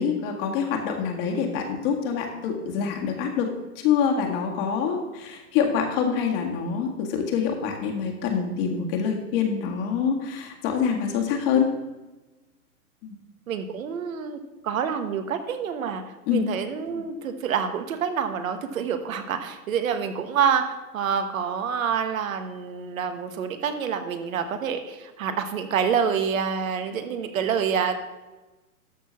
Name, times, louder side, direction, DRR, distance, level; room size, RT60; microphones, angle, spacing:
voice 1, 0.0-11.7 13.0-13.1 16.3-16.4, left 7 dB, 40° left, 2 dB, 1.8 m, -26 dB
voice 2, 13.5-16.0 16.3-28.0, right 7 dB, 65° right, 8 dB, 1.3 m, -27 dB
13.0 x 4.7 x 5.7 m, 1.1 s
hypercardioid pair, 130°, 45 cm